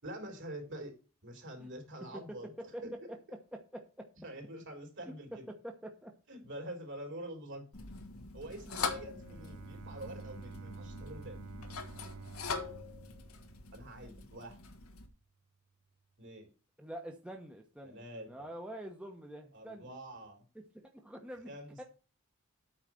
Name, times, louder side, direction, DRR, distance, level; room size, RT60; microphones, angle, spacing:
voice 1, 0.0-0.9 1.2-2.5 2.8-3.1 4.2-5.5 6.3-7.7 8.3-11.4 13.7-14.6 16.2-16.5 17.8-18.5 19.5-20.5 21.5-21.8, right 1 dB, 60° right, 3 dB, 3.6 m, -46 dB
voice 2, 3.5-4.0 5.0-5.2 5.5-6.1 16.8-19.9 20.8-21.5 21.8-21.9, right 1 dB, 5° right, 1 dB, 1.0 m, -46 dB
sound 1, 7.7-15.1, left 4 dB, 90° left, 1.5 m, -42 dB
Bowed string instrument, 9.1-14.0, right 4 dB, 90° right, 0.6 m, -50 dB
8.7 x 5.0 x 7.5 m, 0.34 s
head